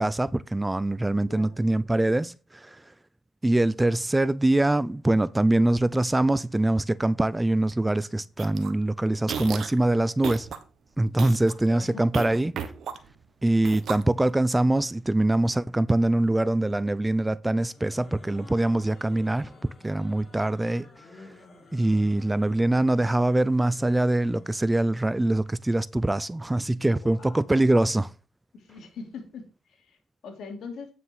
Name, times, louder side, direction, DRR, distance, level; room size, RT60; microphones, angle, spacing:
voice 1, 0.0-2.8 3.4-10.5 11.0-12.5 13.4-20.9 21.7-28.1, right 1 dB, 10° right, 0.4 m, -23 dB
voice 2, 1.3-1.6 11.7-12.3 27.0-27.4 28.5-30.9, left 4 dB, 70° left, 3.1 m, -42 dB
sound 1, 8.4-8.7 9.2-9.8 10.2-10.6 11.0-11.5 12.1-13.2 13.6-14.4, right 7 dB, 65° right, 1.3 m, -34 dB
sound 2, 17.6-24.9, left 2 dB, 35° left, 5.8 m, -52 dB
9.3 x 5.9 x 4.8 m
cardioid pair, 90°, 0 cm